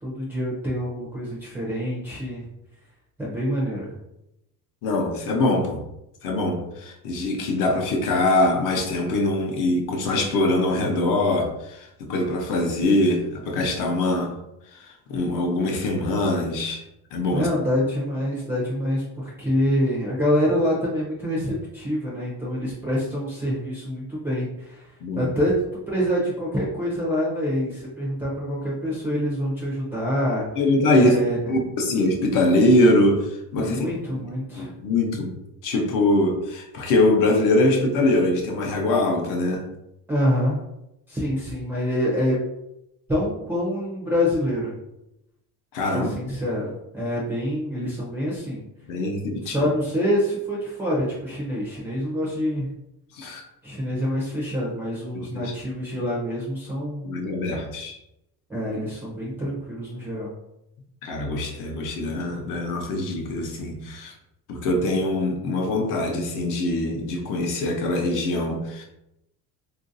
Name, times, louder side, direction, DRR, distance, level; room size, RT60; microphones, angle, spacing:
voice 1, 0.0-2.5 3.2-3.9 17.3-24.9 25.2-30.5 30.9-31.4 33.6-34.7 40.1-40.6 41.1-42.4 43.1-44.7 45.9-48.6 49.5-52.7 53.6-57.1 58.5-60.3, equal, 5° right, -6 dB, 0.4 m, -26 dB
voice 2, 4.8-5.8 6.2-14.3 14.7-14.8 15.1-16.8 17.1-17.5 25.0-25.3 30.5-31.2 31.5-33.8 34.6-35.3 35.6-39.7 45.7-46.1 48.9-49.7 53.1-53.4 55.1-55.5 57.0-58.0 61.0-64.1 64.5-68.8, left 2 dB, 60° left, 2 dB, 0.7 m, -23 dB
3.8 x 2.5 x 2.5 m, 0.86 s
cardioid pair, 180°, 37 cm